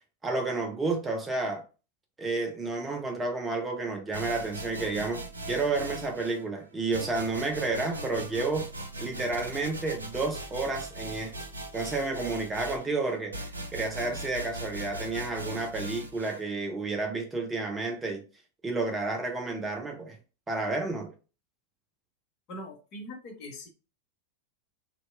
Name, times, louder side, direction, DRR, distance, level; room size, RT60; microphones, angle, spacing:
voice 1, 0.2-1.6 2.2-8.7 9.0-11.4 11.7-13.5 13.7-18.2 18.6-20.2 20.5-21.1, right 3 dB, 15° right, 0.4 m, -31 dB
sound 1, 4.1-6.4 6.9-16.4, right 1 dB, 80° right, 0.4 m, -39 dB
voice 2, 22.5-23.7, left 1 dB, 40° left, 0.7 m, -42 dB
2.7 x 2.1 x 2.4 m
figure-of-eight pair, 90°, 0 cm